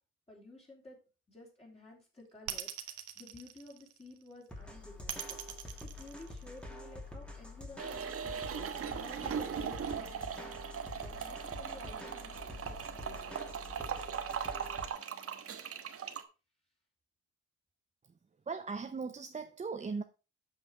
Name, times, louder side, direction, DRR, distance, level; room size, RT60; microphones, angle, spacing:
voice 1, 0.3-1.0 1.3-10.6 10.9-12.8 13.0-13.4, left 2 dB, 20° left, 3.8 m, -53 dB
sound 1, 2.5-4.2 5.1-6.8, right 12 dB, 85° right, 1.3 m, -41 dB
sound 2, 4.5-14.9, left 2 dB, 5° left, 2.2 m, -47 dB
sound 3, 7.8-16.2, right 7 dB, 50° right, 1.2 m, -39 dB
voice 2, 18.5-20.0, right 4 dB, 25° right, 0.6 m, -38 dB
7.8 x 6.0 x 4.6 m
cardioid pair, 90°, 30 cm